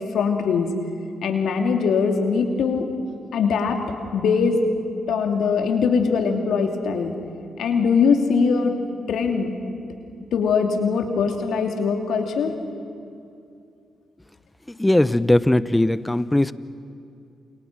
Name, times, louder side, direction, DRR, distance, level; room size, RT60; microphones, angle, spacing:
voice 1, 0.1-0.7 1.2-2.9 3.3-3.8 4.1-4.6 5.1-7.1 7.6-8.7 9.1-9.5 10.3-12.5, left 5 dB, 65° left, 4 dB, 2.9 m, -21 dB
voice 2, 14.7-16.5, left 1 dB, 15° left, 16 dB, 1.0 m, -19 dB
29.5 x 28.0 x 6.2 m, 2.5 s
hypercardioid pair, 40°, 0 cm